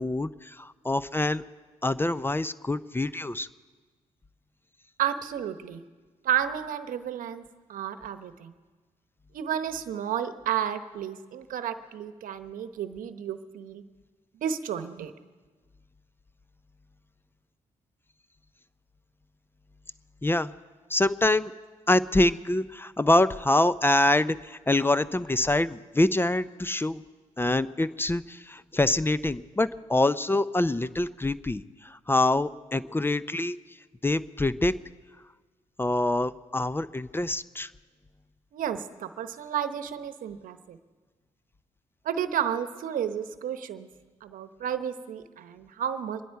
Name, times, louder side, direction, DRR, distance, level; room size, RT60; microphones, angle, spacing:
voice 1, 0.0-1.4 1.8-3.5 20.2-20.5 20.9-21.5 21.9-27.0 27.4-33.6 34.0-34.7 35.8-37.7, left 2 dB, 15° left, 16 dB, 0.5 m, -25 dB
voice 2, 5.0-5.8 6.2-7.4 7.7-8.5 9.3-13.8 14.3-15.1 38.5-40.8 42.0-43.9 44.2-46.2, right 9 dB, 75° right, 11 dB, 0.9 m, -32 dB
25.0 x 10.5 x 4.6 m, 1.4 s
supercardioid pair, 60°, 14 cm